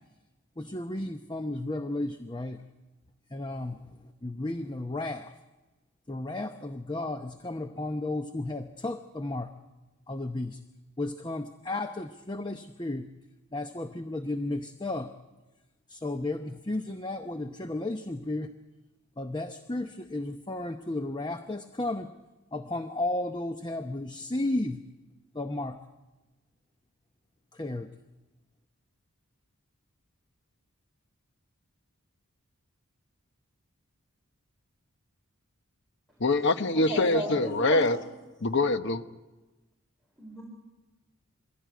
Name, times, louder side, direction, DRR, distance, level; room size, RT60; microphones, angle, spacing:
voice 1, 0.6-2.6 3.3-5.3 6.1-9.5 10.1-10.6 11.0-13.1 13.5-15.1 15.9-18.5 19.2-22.1 22.5-24.8 25.3-25.8 27.5-27.9, left 2 dB, 20° left, 7 dB, 0.7 m, -33 dB
voice 2, 36.2-38.0 38.4-39.0, left 2 dB, 55° left, 9 dB, 1.1 m, -24 dB
voice 3, 36.7-38.0 40.2-40.4, equal, ahead, -2 dB, 4.5 m, -35 dB
23.5 x 16.0 x 9.3 m, 1.1 s
head